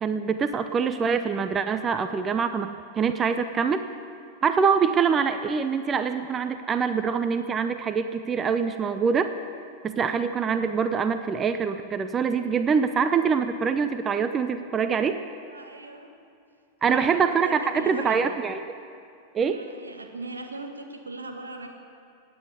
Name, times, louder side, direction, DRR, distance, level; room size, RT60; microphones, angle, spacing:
voice 1, 0.0-3.8 4.4-9.3 9.8-15.2 16.8-18.6 19.3-19.6, right 6 dB, 25° right, 9 dB, 0.7 m, -24 dB
voice 2, 15.5-16.1 16.9-18.2 19.5-21.7, right 2 dB, 75° right, 4 dB, 1.8 m, -39 dB
17.5 x 9.5 x 8.2 m, 2.4 s
figure-of-eight pair, 90°, 0 cm